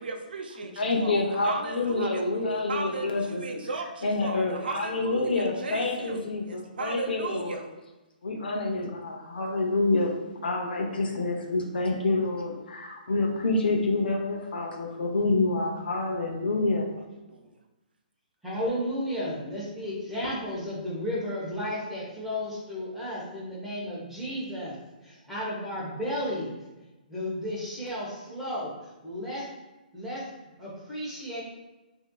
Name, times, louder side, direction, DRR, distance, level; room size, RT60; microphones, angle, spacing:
voice 1, 0.0-7.6 17.0-17.5, right 4 dB, 80° right, 4 dB, 0.5 m, -36 dB
voice 2, 0.8-3.4 4.0-7.6 8.2-10.2 10.4-16.9, left 2 dB, 80° left, 1 dB, 0.7 m, -27 dB
voice 3, 18.4-26.6 27.1-28.7 29.0-29.5 29.9-30.2 30.6-31.4, equal, ahead, -9 dB, 0.9 m, -33 dB
4.2 x 2.7 x 2.2 m, 1.1 s
hypercardioid pair, 160°, 5 cm